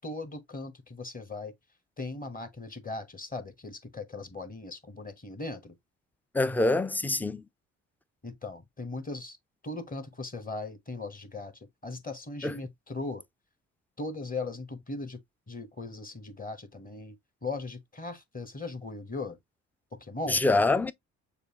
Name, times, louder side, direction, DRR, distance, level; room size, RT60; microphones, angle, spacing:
voice 1, 0.0-1.5 2.0-5.7 8.2-9.4 9.6-11.5 11.8-13.2 14.0-15.2 15.5-17.2 17.4-19.4 20.0-20.4, left 3 dB, 20° left, 1.2 m, -38 dB
voice 2, 6.3-7.4 12.4-12.6 20.3-20.9, left 2 dB, 5° left, 0.3 m, -25 dB
6.6 x 2.5 x 2.9 m
hypercardioid pair, 50°, 38 cm